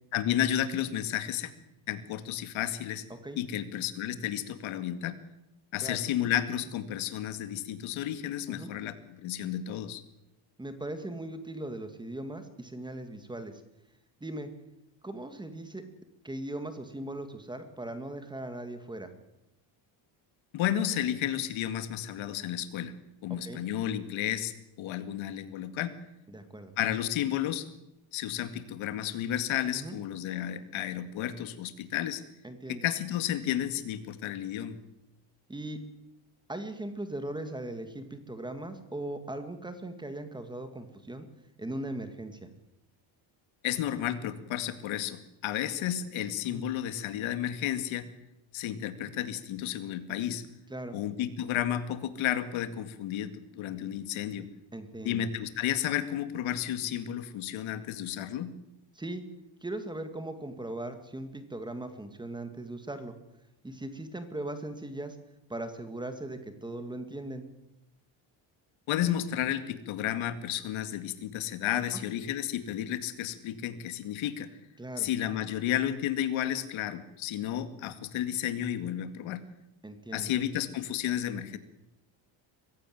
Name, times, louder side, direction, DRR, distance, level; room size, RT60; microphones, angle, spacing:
voice 1, 0.1-1.5 1.9-3.0 3.4-5.2 5.7-10.0 20.5-22.9 23.2-26.0 26.8-27.7 28.1-32.2 32.7-34.8 43.6-48.0 48.5-50.4 50.9-54.5 55.0-58.5 68.9-74.5 75.0-79.4 80.1-81.6, left 11 dB, 75° left, 10 dB, 2.2 m, -32 dB
voice 2, 10.6-13.5 14.2-14.5 15.0-15.8 16.2-19.1 23.4-23.6 26.3-26.7 29.7-30.0 32.4-32.8 35.5-35.8 36.5-41.3 41.6-42.4 46.5-46.6 50.7-51.0 54.7-55.3 59.0-59.2 59.6-63.1 63.6-65.2 65.5-67.4 74.8-75.1 79.8-80.3, right 1 dB, 10° right, 8 dB, 2.0 m, -39 dB
23.0 x 16.0 x 9.3 m, 0.90 s
cardioid pair, 160°, 48 cm